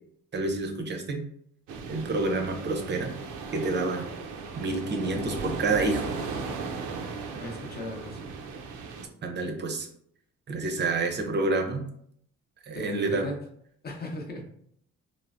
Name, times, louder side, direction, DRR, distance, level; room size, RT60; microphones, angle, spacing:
voice 1, 0.3-1.2 1.9-3.1 3.5-4.1 4.6-6.1 9.2-9.9 10.5-11.8 12.6-13.3, right 3 dB, 35° right, 4 dB, 0.6 m, -28 dB
sound 1, 1.7-9.1, right 4 dB, 85° right, 0.5 m, -36 dB
voice 2, 7.4-8.3 12.7-13.4 13.8-14.4, left 1 dB, 30° left, 2 dB, 0.7 m, -37 dB
3.2 x 2.1 x 2.5 m, 0.66 s
cardioid pair, 90°, 30 cm